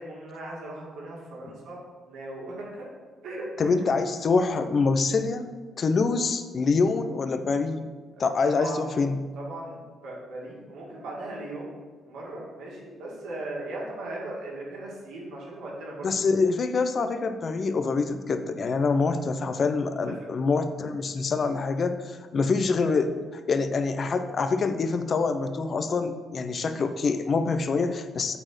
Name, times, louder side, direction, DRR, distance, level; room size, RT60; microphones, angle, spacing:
voice 1, 0.0-1.8 2.1-2.9 3.2-3.7 8.2-8.9 9.4-11.7 12.0-16.1 20.2-20.3 22.3-22.5, right 2 dB, 80° right, -4 dB, 2.4 m, -38 dB
voice 2, 3.6-5.5 5.8-7.9 8.2-9.2 16.0-23.2 23.5-28.4, left 4 dB, 45° left, 9 dB, 0.7 m, -25 dB
9.0 x 4.4 x 6.1 m, 1.4 s
cardioid pair, 90°, 0 cm